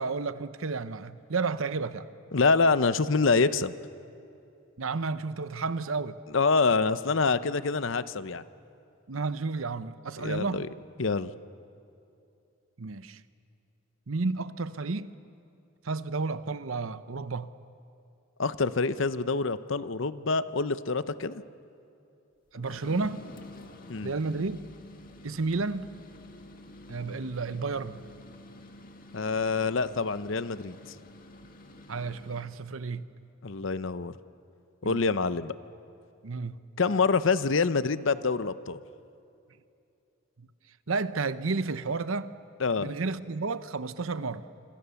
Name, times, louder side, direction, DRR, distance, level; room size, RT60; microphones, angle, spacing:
voice 1, 0.0-2.1 4.8-6.2 9.1-10.7 12.8-13.2 14.1-15.1 15.8-17.5 22.5-23.2 24.0-24.6 25.2-25.9 26.9-28.0 31.9-33.1 34.8-35.0 36.2-36.6 40.4-40.5 40.9-42.3 42.8-44.4, right 4 dB, 80° right, 0.8 m, -31 dB
voice 2, 2.3-3.7 6.3-8.4 10.2-10.7 11.0-11.3 18.4-21.4 23.9-24.1 29.1-30.7 33.4-34.1 34.8-35.5 36.8-38.8 42.6-42.9, left 4 dB, 65° left, 0.8 m, -26 dB
sound 1, 22.5-32.6, left 1 dB, 45° left, 2.0 m, -48 dB
27.0 x 26.0 x 7.0 m
head